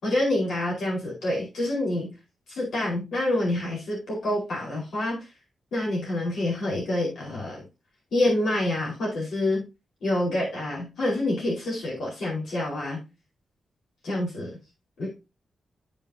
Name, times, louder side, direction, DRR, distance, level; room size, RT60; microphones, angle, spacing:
voice 1, 0.0-2.1 2.5-5.3 5.7-7.6 8.1-9.6 10.0-13.0 14.0-14.6 15.0-15.1, left 1 dB, 80° left, -3 dB, 4.7 m, -27 dB
13.5 x 5.7 x 2.8 m, 0.27 s
wide cardioid pair, 180°, 0 cm